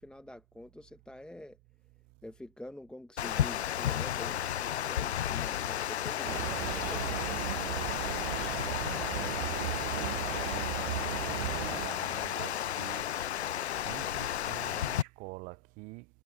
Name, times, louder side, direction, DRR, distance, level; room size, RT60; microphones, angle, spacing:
voice 1, 0.0-1.6 2.2-8.4, left 1 dB, 5° left, 1.0 m, -48 dB
Water, 3.2-15.0, left 11 dB, 85° left, 0.7 m, -33 dB
sound 1, 6.2-11.9, right 18 dB, 55° right, 0.8 m, -36 dB
voice 2, 9.1-9.7 10.0-13.1 13.7-16.1, right 26 dB, 25° right, 0.4 m, -47 dB
hypercardioid pair, 115°, 32 cm